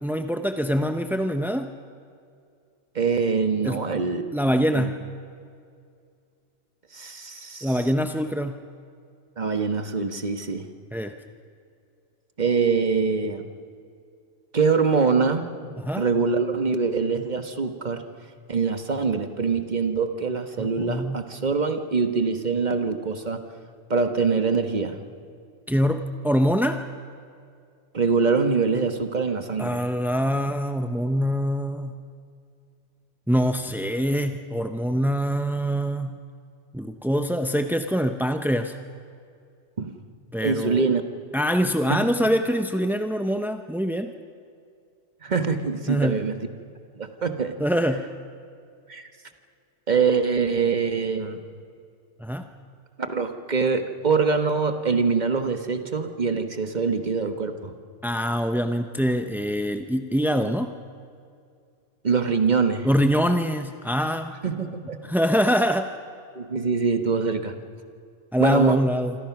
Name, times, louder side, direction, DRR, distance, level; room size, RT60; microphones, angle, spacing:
voice 1, 0.0-1.7 3.6-3.8 4.3-5.1 7.6-8.6 10.9-11.2 15.8-16.0 20.6-21.2 25.7-26.8 29.6-32.0 33.3-36.2 36.7-38.7 40.3-40.8 41.3-44.1 45.9-46.2 47.6-48.1 52.2-52.5 58.0-60.7 62.8-64.3 65.0-66.0 68.3-69.2, equal, 5° right, 7 dB, 0.4 m, -24 dB
voice 2, 2.9-4.2 4.7-4.9 6.9-7.8 9.4-10.7 12.4-13.4 14.5-15.5 16.0-18.0 18.5-23.4 23.9-25.0 27.9-29.8 39.8-39.9 40.4-41.0 41.9-42.0 45.2-46.3 46.9-47.6 48.9-49.1 49.9-51.4 53.0-57.7 62.0-62.9 64.4-65.0 66.3-67.5 68.4-68.8, right 5 dB, 35° right, 7 dB, 1.5 m, -24 dB
27.0 x 25.5 x 6.0 m, 2.3 s
omnidirectional pair, 1.4 m